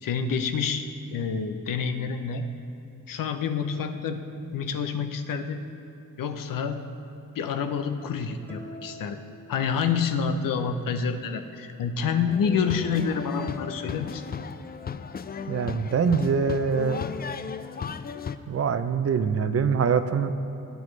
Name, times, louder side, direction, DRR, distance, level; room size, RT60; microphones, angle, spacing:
voice 1, 0.0-2.5 3.1-4.2 4.5-5.6 6.2-6.8 7.3-9.2 9.5-14.2, left 6 dB, 80° left, 8 dB, 0.8 m, -28 dB
sound 1, 8.5-10.3, left 1 dB, 5° left, 1.5 m, -46 dB
sound 2, 12.3-18.4, left 6 dB, 30° left, 0.4 m, -35 dB
voice 2, 15.5-17.0 18.5-20.3, right 6 dB, 45° right, 10 dB, 0.6 m, -24 dB
18.0 x 9.2 x 3.3 m, 2.9 s
cardioid pair, 110°, 33 cm